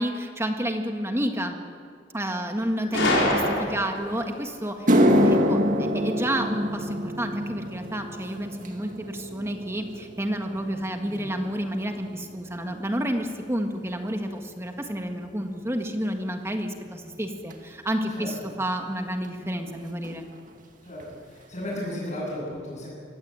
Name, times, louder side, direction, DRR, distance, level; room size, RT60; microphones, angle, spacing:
voice 1, 0.0-1.6 2.1-20.3, equal, 15° right, 4 dB, 1.7 m, -30 dB
Gunshot gunfire, 2.9-4.2, left 1 dB, 85° left, 5.7 m, -24 dB
sound 1, 4.1-4.2 4.7-13.2 13.5-13.9 14.7-14.8 17.5-17.6 19.2-19.3 19.5-19.8 20.0-20.6 21.0-21.1 21.6-21.7, equal, 45° right, 2.2 m, -26 dB
voice 2, 20.8-22.9, left 1 dB, 35° left, -8 dB, 7.9 m, -35 dB
23.5 x 16.5 x 8.9 m, 2.3 s
head